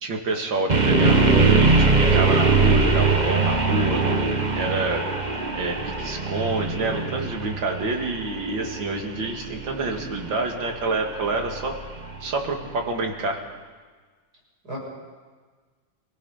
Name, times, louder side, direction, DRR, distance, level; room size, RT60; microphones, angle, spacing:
voice 1, 0.0-4.0 4.5-5.0 5.5-11.8 12.2-13.4, right 3 dB, 65° right, 3 dB, 2.8 m, -28 dB
sound 1, 0.7-12.7, right 3 dB, 25° right, 1.2 m, -22 dB
voice 2, 0.8-1.4 14.6-14.8, left 1 dB, 50° right, -4 dB, 8.0 m, -27 dB
26.5 x 17.5 x 5.7 m, 1.5 s
omnidirectional pair, 2.2 m